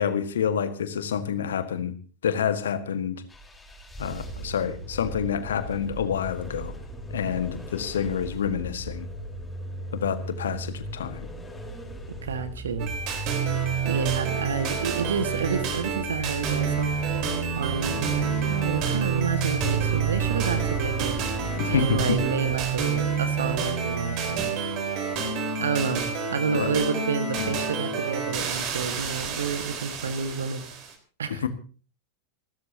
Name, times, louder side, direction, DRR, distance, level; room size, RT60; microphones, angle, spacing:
voice 1, 0.0-1.9 2.2-3.2 4.0-6.7 7.1-9.1 9.9-11.3 21.6-22.2 26.5-26.7 27.4-27.5 31.4-31.5, left 8 dB, 65° left, 10 dB, 1.7 m, -28 dB
sound 1, 3.3-22.7, equal, 10° left, 4.5 m, -38 dB
voice 2, 12.2-12.9 13.8-17.1 17.6-21.2 21.7-24.5 25.6-30.6 31.2-31.5, right 5 dB, 65° right, 11 dB, 1.8 m, -29 dB
sound 2, 12.8-30.9, right 6 dB, 40° right, 4.3 m, -28 dB
27.5 x 13.0 x 2.9 m, 0.38 s
figure-of-eight pair, 90°, 0 cm